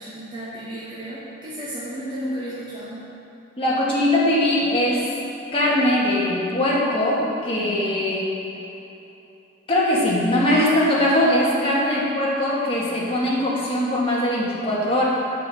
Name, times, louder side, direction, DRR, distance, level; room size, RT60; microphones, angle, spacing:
voice 1, 0.0-3.1 11.9-12.1, equal, 25° right, -9 dB, 1.1 m, -33 dB
voice 2, 3.6-5.1 5.5-8.4 9.7-15.1, left 1 dB, 30° left, -6 dB, 1.6 m, -21 dB
7.8 x 5.4 x 5.6 m, 2.9 s
head